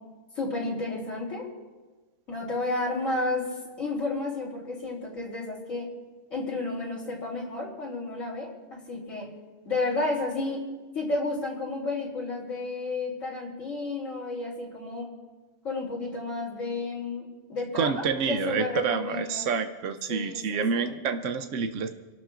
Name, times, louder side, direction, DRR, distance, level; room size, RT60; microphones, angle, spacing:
voice 1, 0.4-1.5 2.3-3.5 3.8-5.9 6.3-9.3 9.7-10.6 10.9-15.1 15.6-19.4 20.1-21.0, left 2 dB, 85° left, -5 dB, 3.6 m, -32 dB
voice 2, 17.7-21.9, right 5 dB, 75° right, 7 dB, 1.1 m, -28 dB
29.5 x 12.5 x 2.5 m, 1.3 s
omnidirectional pair, 1.3 m